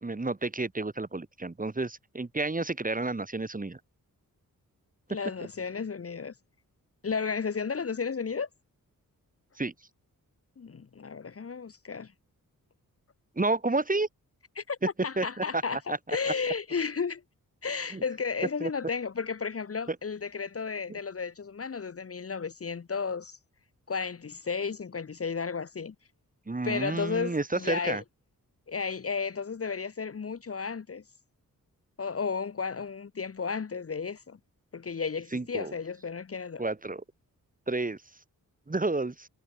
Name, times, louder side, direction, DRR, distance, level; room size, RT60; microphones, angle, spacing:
voice 1, 0.0-3.8 9.6-9.7 13.4-14.1 15.2-15.6 15.9-16.2 17.9-18.0 18.6-18.7 19.9-20.0 26.5-28.0 35.3-35.7 36.6-37.0 37.7-38.0 38.7-39.3, right 3 dB, 25° right, 2.5 m, -30 dB
voice 2, 5.1-6.3 7.0-8.5 10.6-12.1 14.6-14.8 15.0-17.2 17.6-23.4 23.9-25.9 26.6-28.0 28.7-31.0 32.0-34.4 34.7-36.6, left 5 dB, 40° left, 1.1 m, -33 dB
wide cardioid pair, 90°, 34 cm